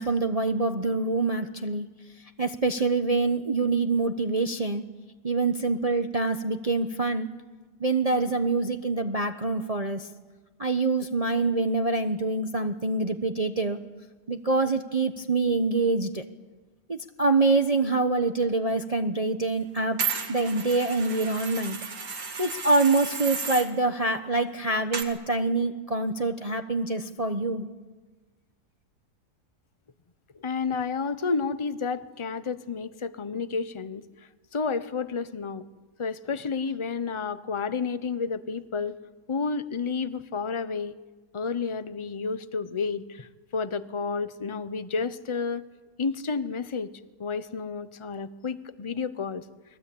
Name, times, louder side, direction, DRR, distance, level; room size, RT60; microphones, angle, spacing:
voice 1, 0.0-1.9 2.4-4.9 5.2-7.3 7.8-10.1 10.6-13.8 14.3-16.2 16.9-20.0 20.3-21.8 22.4-27.7, right 3 dB, 25° right, 6 dB, 1.0 m, -25 dB
sound 1, 20.0-23.7 24.9-25.0, right 6 dB, 80° right, 3.0 m, -33 dB
voice 2, 30.3-34.0 34.5-35.6 36.0-39.0 39.3-40.9 41.3-45.7 46.0-46.9 47.2-49.4, left 5 dB, 25° left, 12 dB, 0.8 m, -31 dB
29.5 x 22.0 x 8.7 m, 1.3 s
omnidirectional pair, 1.7 m